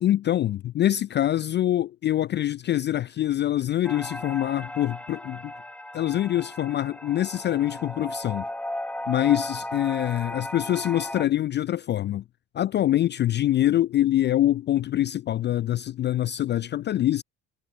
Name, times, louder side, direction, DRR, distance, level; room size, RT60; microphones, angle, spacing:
voice 1, 0.0-5.5 5.9-8.5 9.1-12.2 12.5-17.2, left 13 dB, 30° left, 0.4 m, -24 dB
sound 1, 3.8-11.2, left 1 dB, 5° left, 0.9 m, -36 dB
figure-of-eight pair, 55°, 42 cm